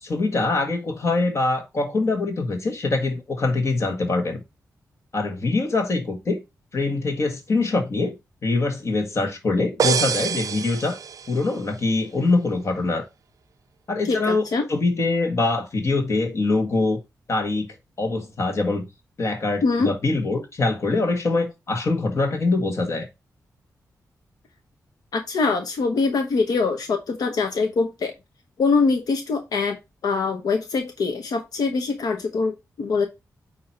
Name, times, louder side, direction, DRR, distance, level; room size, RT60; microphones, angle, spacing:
voice 1, 0.0-4.4 5.1-6.4 6.7-8.1 8.4-11.0 11.3-13.0 13.9-17.0 17.3-18.8 19.2-23.1, left 3 dB, 50° left, 1.7 m, -23 dB
sound 1, 9.8-11.6, right 7 dB, 65° right, 0.5 m, -26 dB
voice 2, 14.1-14.7 19.6-19.9 25.1-28.1 28.6-29.8 30.0-33.1, left 4 dB, 80° left, 1.0 m, -23 dB
8.8 x 3.0 x 4.4 m
wide cardioid pair, 110°, 6 cm